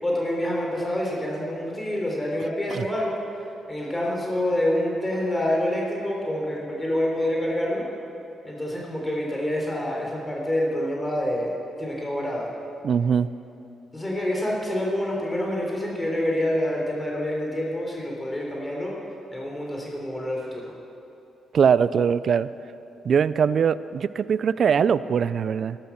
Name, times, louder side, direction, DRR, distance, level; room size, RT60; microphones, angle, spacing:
voice 1, 0.0-3.2 3.7-7.8 8.4-11.5 11.8-12.5 13.9-18.9 19.3-20.6, left 1 dB, 20° left, -2 dB, 3.6 m, -27 dB
voice 2, 12.8-13.3 21.5-22.5 23.0-25.8, right 7 dB, 60° right, 17 dB, 0.4 m, -21 dB
13.5 x 12.0 x 6.0 m, 2.8 s
supercardioid pair, 60°, 0 cm